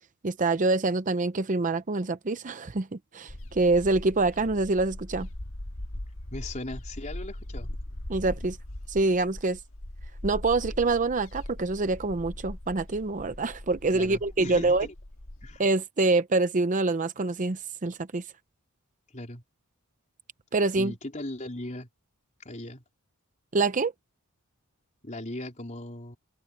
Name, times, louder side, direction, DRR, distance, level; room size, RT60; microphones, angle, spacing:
voice 1, 0.2-5.3 8.1-8.6 8.9-9.6 10.2-14.9 15.6-18.2 20.5-20.9 23.5-23.9, right 3 dB, 35° right, 0.6 m, -26 dB
sound 1, 3.3-15.6, left 1 dB, 65° left, 1.8 m, -40 dB
voice 2, 6.3-7.7 13.9-14.9 15.4-15.6 19.1-19.4 20.8-21.9 22.4-22.8 25.0-26.2, left 1 dB, 35° left, 4.0 m, -38 dB
open air
head